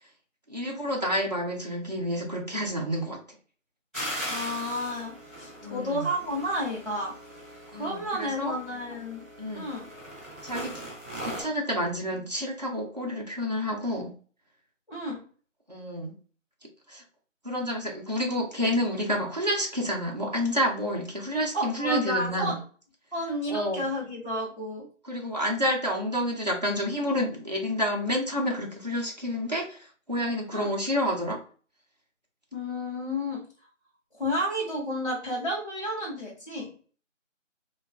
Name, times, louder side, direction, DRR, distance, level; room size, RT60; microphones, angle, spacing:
voice 1, 0.5-3.2 5.6-6.1 7.7-8.5 9.4-9.6 10.4-10.7 11.2-14.1 15.7-16.1 16.9-17.0 17.4-22.6 23.5-23.8 25.0-31.4, equal, 35° right, -2 dB, 0.6 m, -29 dB
sound 1, 3.9-11.4, equal, ahead, 0.8 m, -39 dB
voice 2, 4.3-7.1 7.7-9.2 9.5-9.9 14.9-15.2 21.5-22.6 23.1-24.9 30.5-30.7 32.5-33.4 34.1-36.7, equal, 35° left, -8 dB, 1.0 m, -31 dB
3.3 x 2.3 x 3.4 m, 0.41 s
figure-of-eight pair, 170°, 38 cm